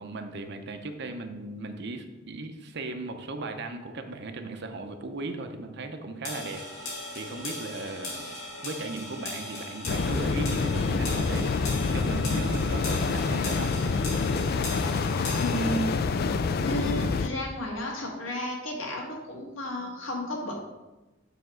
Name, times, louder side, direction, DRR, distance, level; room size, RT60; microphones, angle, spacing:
voice 1, 0.0-8.4 8.6-11.6 11.9-13.8, right 2 dB, 55° right, 6 dB, 0.7 m, -37 dB
sound 1, 6.2-15.9, left 2 dB, 90° left, 2.7 m, -38 dB
sound 2, 9.9-17.3, left 4 dB, 50° left, 0.3 m, -27 dB
voice 2, 15.4-16.2 16.6-20.5, left 1 dB, 70° left, -1 dB, 1.7 m, -33 dB
6.9 x 3.5 x 6.3 m, 1.0 s
head